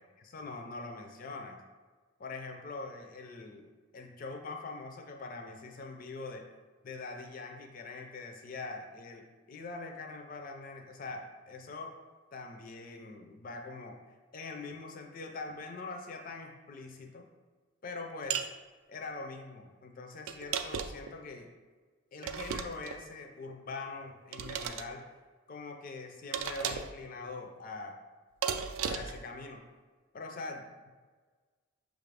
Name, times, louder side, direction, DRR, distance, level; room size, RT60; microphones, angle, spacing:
voice 1, 0.3-1.6 2.2-6.5 6.8-9.2 9.5-12.0 12.3-17.2 17.8-18.5 18.9-21.5 22.1-25.1 25.5-28.0 28.8-29.6 30.1-30.9, left 3 dB, 40° left, 3 dB, 0.4 m, -43 dB
sound 1, 18.3-18.5 20.3-21.1 22.2-23.0 24.3-24.9 26.3-27.0 28.4-29.2, right 7 dB, 75° right, 0.3 m, -35 dB
6.3 x 2.5 x 3.3 m, 1.4 s
head